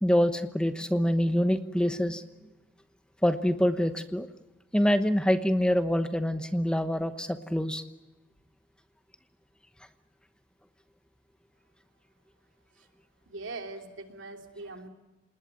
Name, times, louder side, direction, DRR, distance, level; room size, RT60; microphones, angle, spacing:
voice 1, 0.0-2.2 3.2-4.3 4.7-7.8, equal, 5° left, 9 dB, 1.0 m, -25 dB
voice 2, 13.3-14.9, right 3 dB, 85° right, 4 dB, 3.1 m, -41 dB
27.0 x 20.0 x 9.4 m, 1.1 s
head